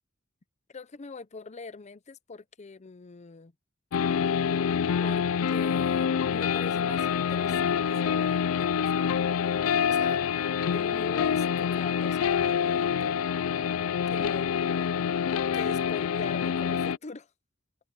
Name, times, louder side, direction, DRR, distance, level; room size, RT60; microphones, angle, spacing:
voice 1, 0.7-3.5 5.0-9.6 9.9-10.3 10.7-13.2 14.1-14.9 15.5-17.3, left 4 dB, 35° left, 0.6 m, -42 dB
sound 1, 3.9-17.0, left 7 dB, 85° left, 0.4 m, -26 dB
head